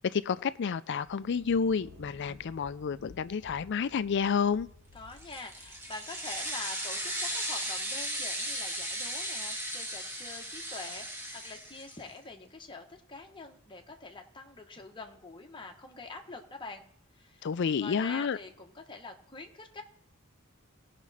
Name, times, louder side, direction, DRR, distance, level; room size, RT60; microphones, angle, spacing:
voice 1, 0.0-4.7 17.4-18.4, left 6 dB, 55° left, 0.4 m, -30 dB
Thunder, 1.0-7.5, left 2 dB, 80° right, 2.1 m, -55 dB
voice 2, 4.9-16.8 17.1-17.5 17.8-19.8, left 3 dB, 25° left, 1.2 m, -45 dB
sound 1, 5.1-12.1, right 1 dB, 10° right, 2.1 m, -36 dB
18.0 x 6.0 x 4.2 m
head